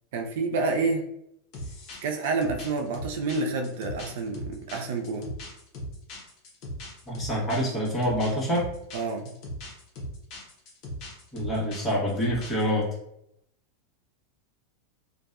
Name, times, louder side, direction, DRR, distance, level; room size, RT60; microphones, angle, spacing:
voice 1, 0.1-1.1 2.0-5.3 8.9-9.4, right 3 dB, 70° right, 4 dB, 0.4 m, -28 dB
sound 1, 1.5-12.7, equal, 50° left, 0.9 m, -39 dB
voice 2, 7.1-8.7 11.3-12.9, equal, 20° left, -5 dB, 1.1 m, -26 dB
2.6 x 2.2 x 2.4 m, 0.79 s
hypercardioid pair, 120°, 0 cm